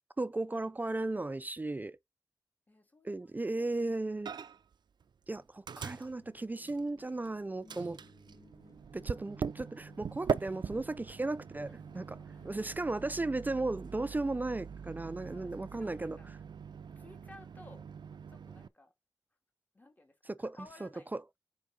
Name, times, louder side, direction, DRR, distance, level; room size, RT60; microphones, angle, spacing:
voice 1, 0.2-2.0 3.0-4.3 5.3-8.0 8.9-12.0 12.5-16.2 20.4-20.5, right 2 dB, 25° right, 0.4 m, -35 dB
voice 2, 2.7-4.1 4.4-4.5 9.0-9.2 11.7-12.5 12.8-12.9 15.2-16.3 17.0-17.9 18.3-18.9 19.7-21.1, left 1 dB, 25° left, 1.9 m, -58 dB
Microwave oven, 4.3-4.7 5.0-7.3 7.7-18.7, right 6 dB, 90° right, 0.5 m, -42 dB
sound 1, 5.7-13.1, left 3 dB, 55° left, 2.0 m, -61 dB
6.9 x 4.6 x 4.0 m
wide cardioid pair, 105°, 7 cm